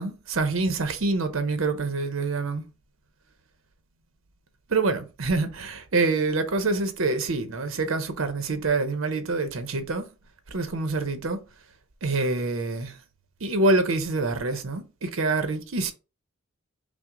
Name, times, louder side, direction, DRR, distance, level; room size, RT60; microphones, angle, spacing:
voice 1, 0.0-2.6 4.7-10.1 10.5-11.4 12.0-13.0 13.4-15.9, right 3 dB, 70° right, 0.7 m, -26 dB
5.8 x 2.0 x 3.7 m
head